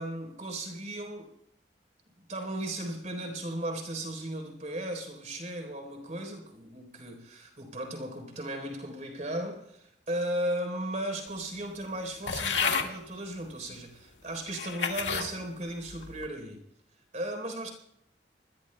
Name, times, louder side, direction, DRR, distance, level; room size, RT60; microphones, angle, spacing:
voice 1, 0.0-1.3 2.2-16.6 17.1-17.7, right 1 dB, 40° right, 3.9 m, -36 dB
sound 1, 12.3-12.9 13.7-13.8 14.5-15.3 15.9-16.3, left 6 dB, 85° left, 1.9 m, -30 dB
27.0 x 21.0 x 2.3 m
head